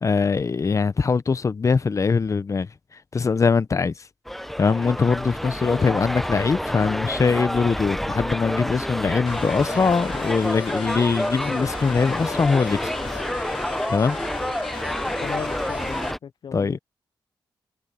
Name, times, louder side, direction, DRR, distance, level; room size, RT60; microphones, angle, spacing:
voice 1, 0.0-2.7 3.1-3.9 4.6-12.9 13.4-13.6 13.9-14.2 16.5-16.8, left 5 dB, 40° left, 0.8 m, -22 dB
sound 1, 4.3-16.2, equal, 5° left, 0.6 m, -29 dB
voice 2, 5.7-6.0 15.2-16.8, left 7 dB, 65° left, 0.5 m, -35 dB
sound 2, 9.3-16.1, left 8 dB, 85° left, 2.0 m, -37 dB
cardioid pair, 85°, 8 cm